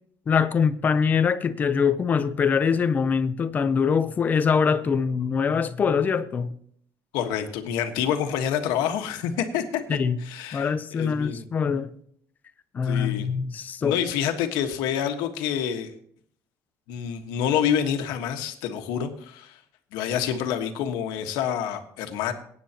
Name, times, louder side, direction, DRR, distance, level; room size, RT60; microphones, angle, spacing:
voice 1, 0.3-6.5 9.9-10.2 10.5-11.9 12.7-14.0, left 6 dB, 25° left, 0.5 m, -23 dB
voice 2, 7.1-11.5 12.8-13.3 13.8-15.9 16.9-19.6 19.9-22.3, left 9 dB, 80° left, 1.4 m, -27 dB
22.5 x 9.4 x 2.9 m
cardioid pair, 175°, 7 cm